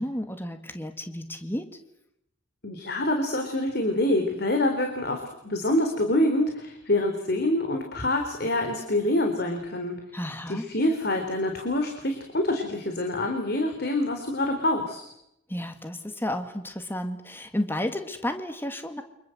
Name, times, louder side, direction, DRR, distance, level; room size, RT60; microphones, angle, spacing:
voice 1, 0.0-1.7 10.1-10.7 15.5-19.0, left 1 dB, 10° left, 7 dB, 2.0 m, -32 dB
voice 2, 2.6-10.0 10.5-15.0, left 1 dB, 50° left, 4 dB, 3.7 m, -26 dB
29.5 x 25.5 x 7.9 m, 0.81 s
head